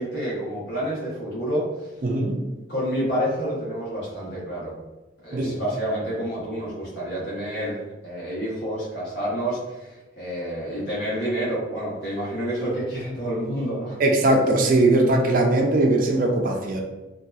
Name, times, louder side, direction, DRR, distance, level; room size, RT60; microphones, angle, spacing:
voice 1, 0.0-1.9 2.7-4.7 5.2-14.0, equal, 65° left, -7 dB, 1.2 m, -29 dB
voice 2, 2.0-2.5 5.3-5.6 14.0-16.8, right 2 dB, 45° right, 2 dB, 0.3 m, -20 dB
2.7 x 2.3 x 2.3 m, 1.1 s
head